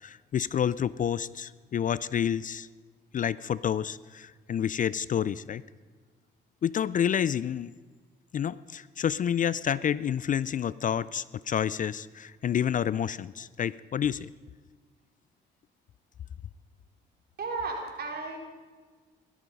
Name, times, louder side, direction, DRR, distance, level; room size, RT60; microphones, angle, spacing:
voice 1, 0.0-2.7 3.1-5.6 6.6-7.7 8.3-14.3, left 9 dB, 40° left, 19 dB, 0.4 m, -29 dB
voice 2, 17.4-18.4, right 3 dB, 55° right, 1 dB, 3.9 m, -34 dB
17.0 x 13.0 x 5.4 m, 1.4 s
cardioid pair, 90°, 20 cm